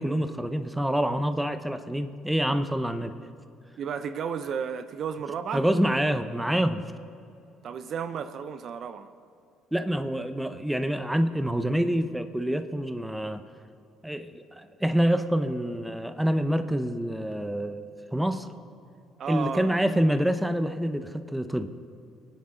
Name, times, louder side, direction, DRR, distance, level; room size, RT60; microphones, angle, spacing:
voice 1, 0.0-3.1 5.5-6.8 9.7-13.4 14.0-17.8 18.1-18.5 19.3-21.7, equal, 5° right, 9 dB, 0.8 m, -26 dB
voice 2, 3.8-5.7 7.6-9.1 19.2-19.8, right 7 dB, 55° right, 11 dB, 0.6 m, -33 dB
23.0 x 9.6 x 3.9 m, 2.5 s
supercardioid pair, 75°, 0 cm